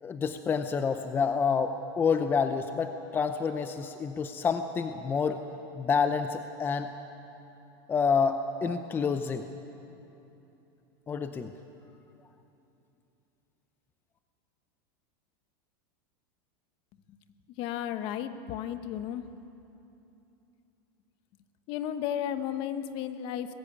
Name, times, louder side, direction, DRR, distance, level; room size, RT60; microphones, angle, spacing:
voice 1, 0.0-5.4 5.8-6.9 7.9-9.5 11.1-11.5, left 5 dB, 15° left, 8 dB, 0.7 m, -28 dB
voice 2, 17.6-19.3 21.7-23.5, left 10 dB, 45° left, 10 dB, 1.1 m, -33 dB
20.5 x 15.5 x 9.7 m, 2.9 s
supercardioid pair, 150°, 12 cm